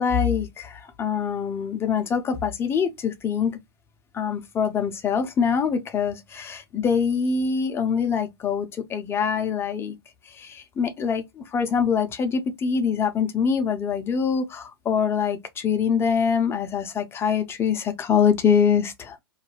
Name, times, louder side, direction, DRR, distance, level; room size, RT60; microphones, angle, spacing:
voice 1, 0.0-3.6 4.1-9.9 10.2-19.2, left 6 dB, 20° left, 0.5 m, -24 dB
2.4 x 2.1 x 3.2 m
figure-of-eight pair, 105°, 13 cm